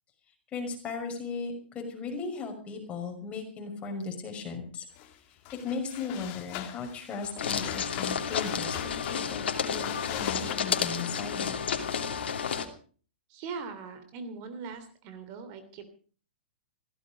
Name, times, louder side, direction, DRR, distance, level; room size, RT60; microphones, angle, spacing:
voice 1, 0.5-4.9 5.6-11.6, left 4 dB, 20° left, 3 dB, 5.9 m, -37 dB
sound 1, 5.0-5.1 5.4-10.5, left 12 dB, 40° left, 2.7 m, -41 dB
sound 2, 7.4-12.7, left 7 dB, 80° left, 2.7 m, -31 dB
voice 2, 13.3-15.9, right 5 dB, 40° right, 10 dB, 3.1 m, -40 dB
16.5 x 16.0 x 5.1 m, 0.42 s
hypercardioid pair, 135°, 6 cm